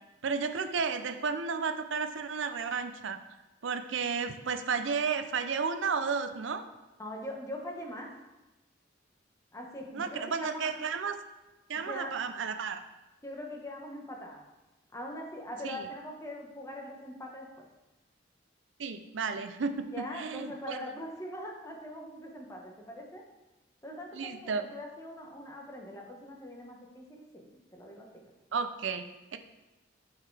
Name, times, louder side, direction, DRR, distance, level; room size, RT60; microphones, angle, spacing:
voice 1, 0.2-3.2 3.6-6.6 9.9-11.2 11.7-12.8 15.6-15.9 18.8-20.8 24.1-24.6 28.5-29.0 29.3-29.4, right 5 dB, 75° right, 8 dB, 0.5 m, -32 dB
voice 2, 7.0-8.1 9.5-10.7 11.7-12.1 13.2-14.5 14.9-17.7 19.9-23.2 23.8-28.2, left 1 dB, 15° left, 0 dB, 1.1 m, -42 dB
11.5 x 4.8 x 3.3 m, 1.0 s
head